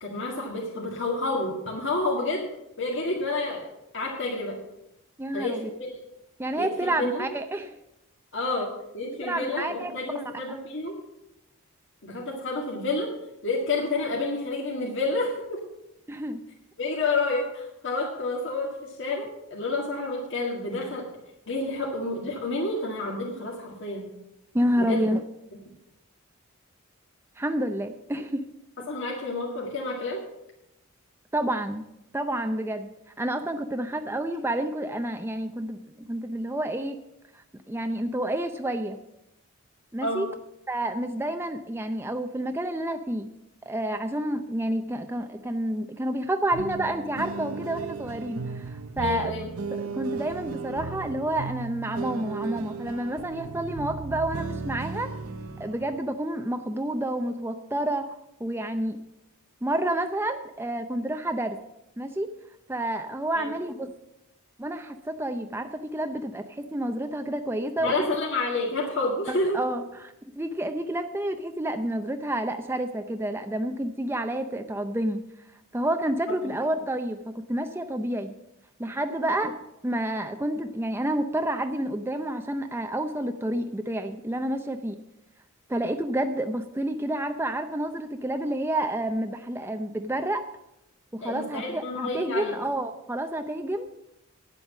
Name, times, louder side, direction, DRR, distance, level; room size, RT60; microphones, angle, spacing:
voice 1, 0.0-2.5 2.8-3.6 3.9-4.6 5.3-5.9 6.6-7.3 8.3-8.7 8.9-10.9 12.0-13.1 13.4-15.6 16.8-21.1 21.5-24.1 24.8-25.0 28.9-30.2 40.0-40.2 49.0-49.5 63.4-63.5 67.8-69.6 76.3-76.5 91.2-92.5, left 2 dB, 60° left, -2 dB, 1.9 m, -29 dB
voice 2, 5.2-5.7 6.4-7.7 9.1-10.6 16.1-16.4 24.5-25.2 27.4-28.4 31.3-31.8 32.1-32.9 33.2-37.0 37.7-39.0 39.9-40.3 40.7-43.3 43.7-49.4 49.7-55.1 55.6-58.0 58.4-59.0 59.6-61.6 62.0-62.3 62.7-63.9 64.6-67.9 69.3-75.2 75.7-77.2 77.5-78.3 78.8-79.6 79.8-85.0 85.7-90.4 91.1-93.9, right 1 dB, 10° right, 6 dB, 0.5 m, -29 dB
sound 1, 46.5-56.0, right 4 dB, 80° right, 0.8 m, -36 dB
10.0 x 8.0 x 7.2 m, 0.87 s
head